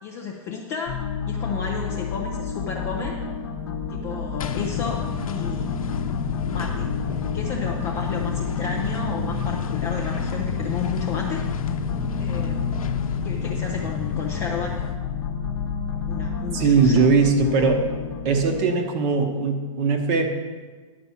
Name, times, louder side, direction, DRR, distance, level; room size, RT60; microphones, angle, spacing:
voice 1, 0.0-1.0 1.3-3.2 3.9-5.7 6.4-6.9 7.3-11.4 12.2-12.7 13.2-14.8 16.0-17.0 17.6-17.7, left 6 dB, 10° left, -1 dB, 0.3 m, -32 dB
sound 1, 0.9-18.6, left 5 dB, 45° left, 0.9 m, -30 dB
sound 2, 4.4-15.0, left 6 dB, 85° left, 0.8 m, -31 dB
voice 2, 16.5-17.8 18.2-20.3, right 4 dB, 20° right, 5 dB, 0.8 m, -20 dB
10.5 x 5.3 x 7.1 m, 1.4 s
hypercardioid pair, 175°, 18 cm